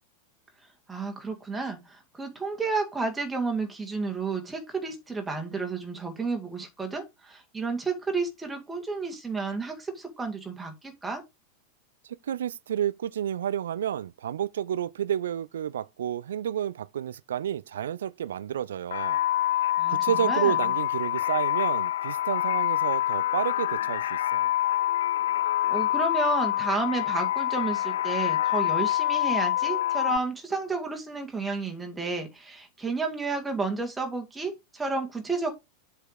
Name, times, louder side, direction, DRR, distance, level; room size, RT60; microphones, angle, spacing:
voice 1, 0.9-11.2 19.8-20.6 25.7-35.5, right 4 dB, 10° right, 2.1 m, -31 dB
voice 2, 12.1-19.2 19.9-24.5, right 10 dB, 60° right, 0.5 m, -30 dB
sound 1, 18.9-30.2, left 13 dB, 60° left, 0.3 m, -26 dB
7.7 x 4.7 x 4.9 m
figure-of-eight pair, 90°, 0 cm